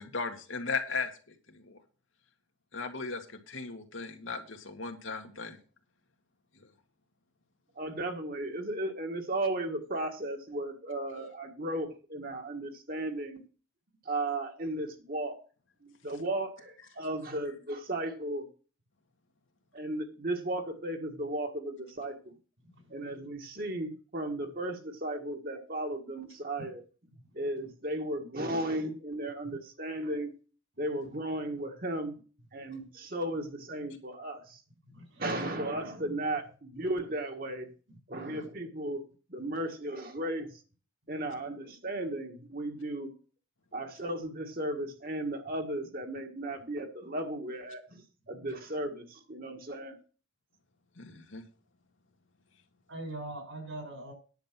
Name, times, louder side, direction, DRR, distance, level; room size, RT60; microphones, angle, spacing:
voice 1, 0.0-1.8 2.7-5.6 51.0-51.4, left 4 dB, 80° left, 2.1 m, -37 dB
voice 2, 7.8-13.4 14.1-15.4 15.8-18.5 19.7-22.3 22.9-26.8 27.3-30.3 30.8-32.1 32.5-34.4 35.2-37.7 38.1-39.0 39.3-40.5 41.1-43.1 43.7-47.8 48.3-49.9, right 1 dB, 45° right, 1.7 m, -35 dB
voice 3, 34.9-35.2 38.1-38.3 52.9-54.1, right 2 dB, 75° right, 6.0 m, -41 dB
10.5 x 7.2 x 6.0 m
head